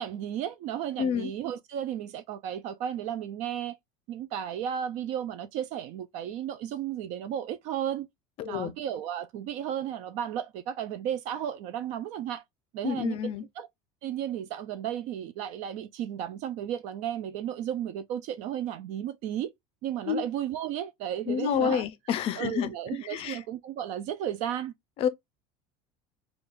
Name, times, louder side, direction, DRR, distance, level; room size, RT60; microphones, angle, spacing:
voice 1, 0.0-3.8 4.1-8.1 8.4-12.4 12.7-13.7 14.0-19.5 19.8-21.8 22.4-24.7, right 10 dB, 50° right, 0.4 m, -34 dB
voice 2, 1.0-1.3 8.4-8.7 12.8-13.4 20.1-20.3 21.3-22.7 23.0-23.4 25.0-25.1, left 8 dB, 40° left, 0.5 m, -29 dB
5.1 x 2.3 x 2.4 m
cardioid pair, 160°, 15 cm